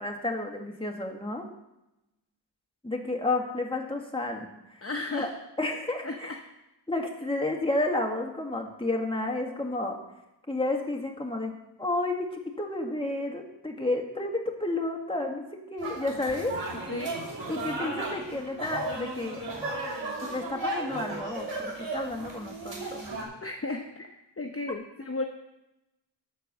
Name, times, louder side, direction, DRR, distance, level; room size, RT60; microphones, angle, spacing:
voice 1, 0.0-1.4 2.8-4.8 5.1-5.3 5.6-6.4 6.9-10.0 10.5-16.6 17.5-19.4 20.3-23.1, left 2 dB, 10° left, 1 dB, 1.8 m, -31 dB
voice 2, 4.8-5.3 6.0-6.4 16.9-17.1 23.4-25.2, left 2 dB, 30° left, 3 dB, 0.9 m, -34 dB
sound 1, 15.8-23.2, right 2 dB, 85° right, 3.0 m, -35 dB
13.5 x 4.6 x 6.7 m, 0.92 s
wide cardioid pair, 45°, 43 cm